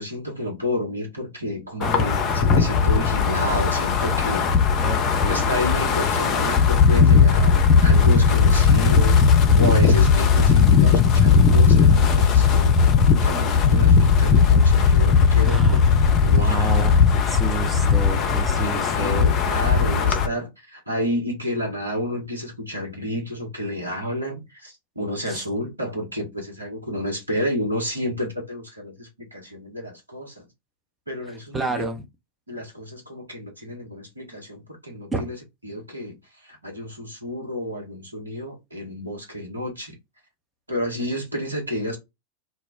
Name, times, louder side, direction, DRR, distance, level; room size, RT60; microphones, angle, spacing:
voice 1, 0.0-4.5 5.2-9.2 9.6-12.8 13.2-15.8 16.2-16.8 18.1-18.2 18.6-30.5 31.1-31.9 32.5-35.4 35.6-40.0 40.7-42.0, equal, 85° right, 1.0 m, -30 dB
Wind, 1.8-20.3, left 5 dB, 35° left, 0.5 m, -17 dB
voice 2, 1.8-2.2 4.8-5.5 15.4-15.9 16.4-19.3 25.3-25.4 31.5-32.0 35.1-35.3, right 3 dB, 10° right, 0.6 m, -30 dB
2.2 x 2.0 x 3.6 m
figure-of-eight pair, 90°, 0 cm